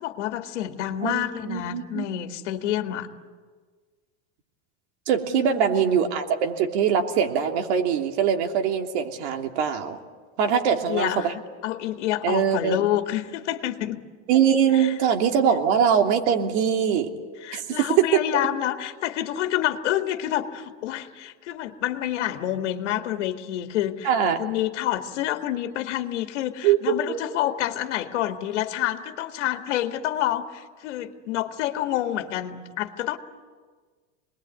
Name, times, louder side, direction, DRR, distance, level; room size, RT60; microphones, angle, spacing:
voice 1, 0.0-3.1 5.2-5.7 10.5-10.6 10.9-11.3 11.6-14.0 14.7-14.9 17.4-33.2, left 12 dB, 90° left, 5 dB, 2.0 m, -28 dB
voice 2, 1.0-2.0 5.1-10.0 10.4-11.3 12.2-12.8 14.3-17.1 17.5-17.6 18.1-18.2 24.0-24.4 26.6-27.2, right 8 dB, 70° right, 3 dB, 3.0 m, -22 dB
27.0 x 21.0 x 9.5 m, 1.5 s
supercardioid pair, 160°, 35 cm